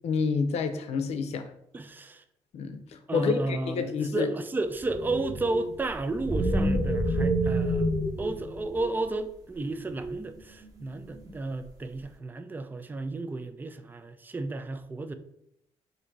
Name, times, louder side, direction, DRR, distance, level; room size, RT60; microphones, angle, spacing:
voice 1, 0.0-1.4 2.5-2.8 3.1-4.3, left 5 dB, 75° left, 8 dB, 0.6 m, -28 dB
voice 2, 1.7-2.2 3.1-7.9 8.2-15.1, right 2 dB, 15° right, 9 dB, 0.4 m, -33 dB
sound 1, 4.7-9.0 9.7-11.3, right 1 dB, 35° right, 1.0 m, -29 dB
3.8 x 2.6 x 4.5 m, 0.76 s
cardioid pair, 90°, 11 cm